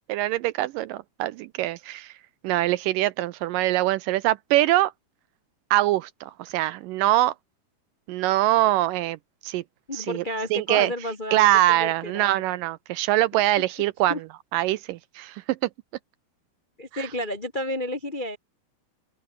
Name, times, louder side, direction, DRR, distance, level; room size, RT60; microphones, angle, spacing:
voice 1, 0.1-2.1 2.4-4.9 5.7-7.3 8.1-9.2 9.4-9.6 9.9-10.2 10.5-10.9 11.3-14.1 14.5-15.6 16.9-17.1, right 15 dB, 80° right, 2.1 m, -23 dB
voice 2, 9.9-12.4 14.1-14.2 16.8-18.4, left 1 dB, 40° left, 0.6 m, -31 dB
open air
omnidirectional pair, 4.3 m